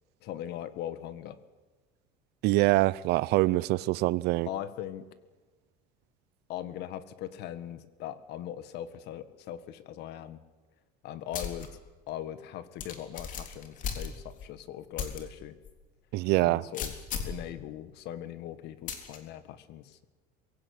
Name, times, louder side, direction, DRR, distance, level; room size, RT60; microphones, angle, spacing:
voice 1, 0.2-1.4 4.5-5.1 6.5-10.4 11.0-11.8 12.1-15.6 16.4-16.9 17.2-20.1, left 11 dB, 60° left, 1.8 m, -40 dB
voice 2, 2.4-4.5 16.1-16.6, right 19 dB, 60° right, 0.7 m, -24 dB
sound 1, 11.3-11.7 12.1-12.2 12.8-14.5 15.0-15.2 15.6-15.7 16.7-17.4 18.9-19.2, left 7 dB, 45° left, 3.6 m, -36 dB
23.0 x 16.5 x 9.8 m
cardioid pair, 145°, 19 cm